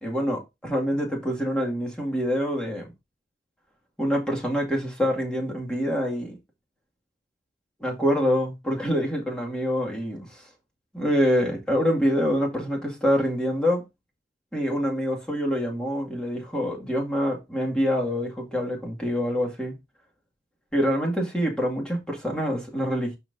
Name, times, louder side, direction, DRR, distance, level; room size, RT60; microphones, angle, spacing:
voice 1, 0.0-2.9 4.0-6.3 7.8-10.4 10.9-13.8 14.5-19.7 20.7-23.2, equal, 5° left, 2.0 m, -26 dB
12.0 x 4.1 x 2.6 m
head